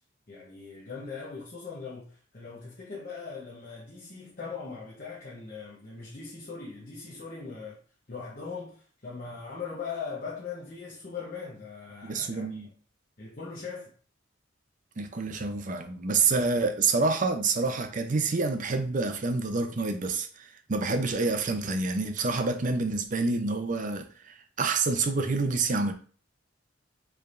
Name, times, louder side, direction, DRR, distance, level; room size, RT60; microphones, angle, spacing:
voice 1, 0.3-7.8 8.1-12.7 13.2-13.9, left 5 dB, 45° left, 0.8 m, -40 dB
voice 2, 12.0-12.7 15.0-25.9, right 3 dB, 40° right, 0.5 m, -28 dB
4.6 x 3.4 x 2.5 m
head